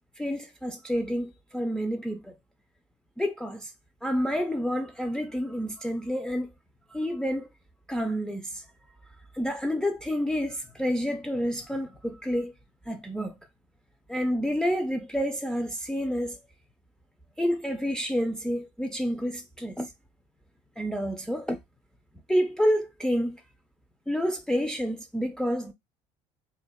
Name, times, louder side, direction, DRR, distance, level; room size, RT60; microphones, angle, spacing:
voice 1, 0.2-2.3 3.2-3.7 4.0-6.5 6.9-7.5 7.9-8.6 9.3-12.5 12.9-13.4 14.1-16.4 17.4-19.9 20.8-21.6 22.3-23.4 24.1-25.7, equal, 5° left, 0.4 m, -29 dB
2.6 x 2.2 x 2.2 m
hypercardioid pair, 75°, 16 cm